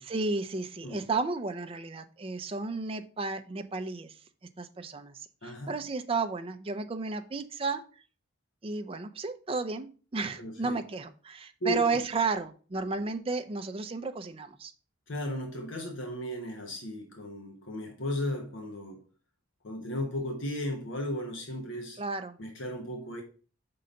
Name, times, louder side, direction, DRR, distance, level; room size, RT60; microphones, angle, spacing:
voice 1, 0.0-7.8 8.6-14.7 22.0-22.4, right 4 dB, 25° right, 0.5 m, -33 dB
voice 2, 5.4-5.8 10.4-10.8 11.6-12.0 15.1-19.0 19.6-22.0 22.4-23.2, left 1 dB, 60° left, 1.1 m, -35 dB
5.6 x 3.8 x 5.1 m
head